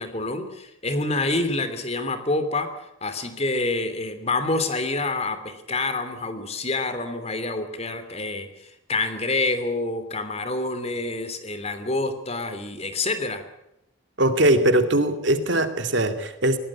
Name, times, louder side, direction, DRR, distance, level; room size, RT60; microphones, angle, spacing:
voice 1, 0.0-2.7 3.0-13.4, left 2 dB, 30° left, 9 dB, 3.1 m, -27 dB
voice 2, 14.2-16.6, right 1 dB, 60° right, 8 dB, 2.4 m, -21 dB
22.5 x 18.0 x 8.7 m, 0.84 s
head